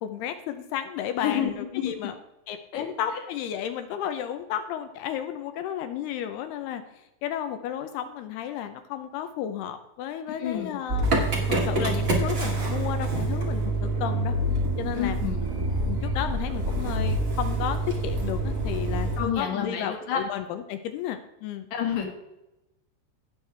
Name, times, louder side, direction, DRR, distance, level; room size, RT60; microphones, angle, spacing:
voice 1, 0.0-2.2 2.5-6.8 7.2-11.1 11.6-14.4 14.8-15.2 15.9-21.7, left 10 dB, 80° left, 9 dB, 2.4 m, -33 dB
voice 2, 1.2-1.9 2.7-2.8 10.4-10.8 14.9-15.4 19.2-20.2 21.7-22.1, left 8 dB, 55° left, 3 dB, 2.2 m, -29 dB
Motor vehicle (road) / Engine starting, 10.9-19.2, right 2 dB, 90° right, 0.7 m, -26 dB
17.5 x 6.2 x 3.3 m, 0.92 s
omnidirectional pair, 5.3 m